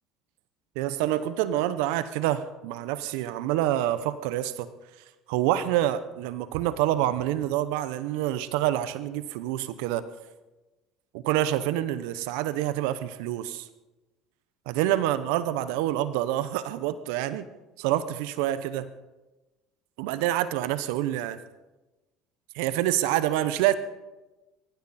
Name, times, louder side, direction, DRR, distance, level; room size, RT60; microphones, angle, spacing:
voice 1, 0.8-4.7 5.3-10.0 11.1-13.7 14.7-17.5 17.8-18.9 20.0-21.4 22.5-23.7, right 13 dB, 75° right, 14 dB, 0.8 m, -27 dB
23.0 x 15.0 x 4.2 m, 1.1 s
hypercardioid pair, 70°, 0 cm